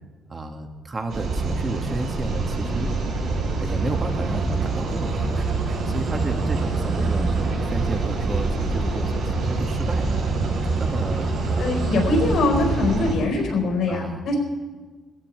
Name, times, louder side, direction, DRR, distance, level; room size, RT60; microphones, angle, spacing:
voice 1, 0.3-2.9 3.6-10.1 10.8-11.8 13.9-14.2, right 2 dB, 30° right, 4 dB, 1.8 m, -32 dB
sound 1, 1.1-13.1, right 3 dB, 70° right, 5.5 m, -25 dB
sound 2, 1.6-10.4, right 5 dB, 50° right, 4.2 m, -38 dB
voice 2, 11.6-14.4, left 3 dB, 70° left, 1 dB, 4.6 m, -23 dB
16.0 x 14.0 x 4.8 m, 1.4 s
cardioid pair, 90°, 0 cm